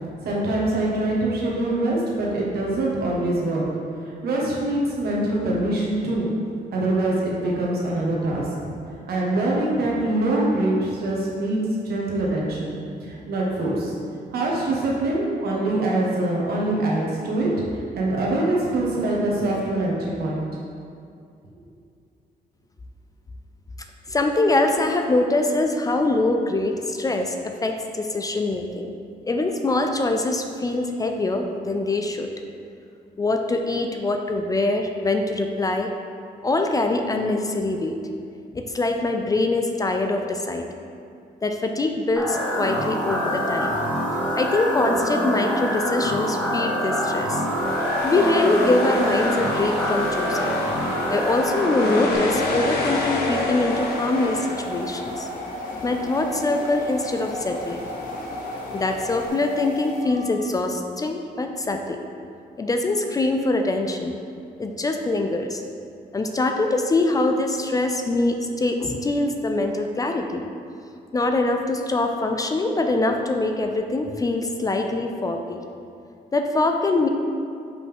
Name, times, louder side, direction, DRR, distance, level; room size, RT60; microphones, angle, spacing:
voice 1, 0.2-3.6 4.1-6.3 6.7-8.5 9.1-13.9 14.3-20.4, right 1 dB, 75° right, -4 dB, 1.3 m, -24 dB
voice 2, 24.1-28.9 29.3-32.3 33.2-35.9 36.4-38.0 38.5-40.6 41.4-43.8 44.4-47.4 48.0-50.6 51.1-55.3 55.7-57.8 58.7-62.0 62.6-64.2 64.6-65.6 66.1-70.4 71.1-75.6 76.3-77.1, left 2 dB, 20° left, 4 dB, 0.3 m, -23 dB
sound 1, 42.2-52.2, equal, ahead, 0.9 m, -26 dB
sound 2, 42.3-60.5, left 1 dB, 55° left, 1.0 m, -36 dB
sound 3, 47.4-59.3, left 2 dB, 85° left, 0.9 m, -30 dB
5.4 x 5.3 x 3.5 m, 2.4 s
cardioid pair, 140°, 16 cm